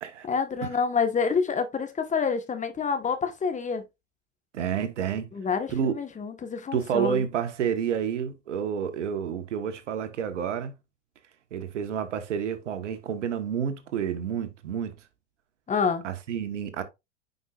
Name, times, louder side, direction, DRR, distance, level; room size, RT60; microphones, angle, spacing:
voice 1, 0.3-3.8 5.3-7.2 15.7-16.0, left 5 dB, 20° left, 1.4 m, -27 dB
voice 2, 4.5-5.2 5.7-5.9 6.7-10.7 11.5-14.9 16.0-16.8, right 8 dB, 80° right, 1.4 m, -29 dB
9.4 x 5.3 x 2.5 m
hypercardioid pair, 95°, 36 cm